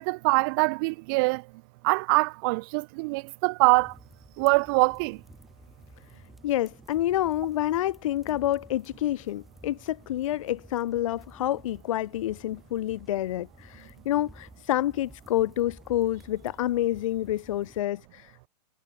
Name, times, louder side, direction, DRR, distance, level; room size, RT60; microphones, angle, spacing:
voice 1, 0.0-1.4 1.8-3.9 4.4-5.2, right 28 dB, 30° right, 1.2 m, -24 dB
sound 1, 3.7-17.8, equal, ahead, 7.3 m, -53 dB
voice 2, 6.4-18.5, left 13 dB, 50° left, 0.5 m, -28 dB
hypercardioid pair, 160°, 21 cm